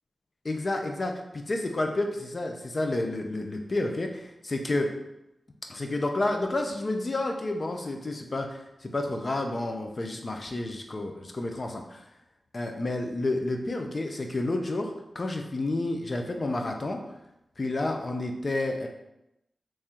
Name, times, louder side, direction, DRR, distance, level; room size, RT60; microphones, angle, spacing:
voice 1, 0.4-4.9 5.7-12.0 12.5-17.0 17.6-18.9, left 2 dB, 40° left, 4 dB, 0.5 m, -30 dB
3.1 x 2.8 x 3.6 m, 0.88 s
wide cardioid pair, 105°, 0 cm